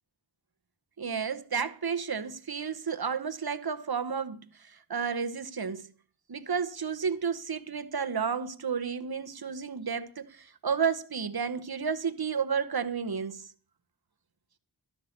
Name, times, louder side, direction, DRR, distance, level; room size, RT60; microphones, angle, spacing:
voice 1, 1.0-5.9 6.3-13.5, right 6 dB, 55° right, 1.0 m, -32 dB
12.5 x 8.7 x 6.5 m
wide cardioid pair, 70°, 45 cm